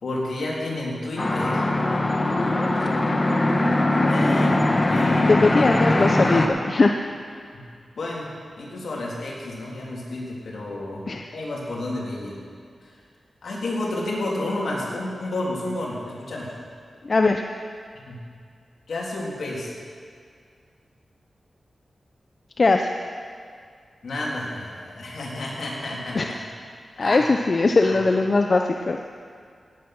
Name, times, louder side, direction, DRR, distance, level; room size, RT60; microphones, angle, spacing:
voice 1, 0.0-1.6 4.1-4.6 4.9-5.4 8.0-8.3 8.6-11.0 11.3-12.4 13.4-16.5 18.1-18.2 18.9-19.7 24.0-26.4 27.0-27.2 27.6-28.0, left 2 dB, 75° left, -4 dB, 3.4 m, -30 dB
sound 1, 1.2-6.5, left 2 dB, 30° left, 1.5 m, -21 dB
voice 2, 5.3-6.9 11.1-11.2 17.0-17.4 22.6-22.9 26.1-26.3 27.0-29.0, left 3 dB, 50° left, 4 dB, 0.7 m, -20 dB
17.5 x 8.7 x 6.1 m, 2.2 s
cardioid pair, 60°, 0 cm